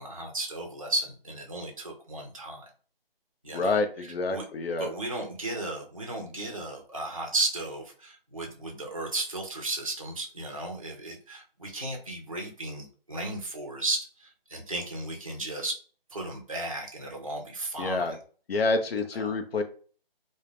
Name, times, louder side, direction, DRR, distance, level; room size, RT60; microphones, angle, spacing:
voice 1, 0.0-2.7 3.4-3.8 4.3-4.5 4.8-15.8 16.1-18.2 19.1-19.3, right 2 dB, 35° right, 1 dB, 0.4 m, -34 dB
voice 2, 3.5-4.9 17.8-18.2 18.5-19.6, left 3 dB, 80° left, 6 dB, 0.6 m, -28 dB
2.3 x 2.1 x 3.2 m, 0.42 s
hypercardioid pair, 175°, 30 cm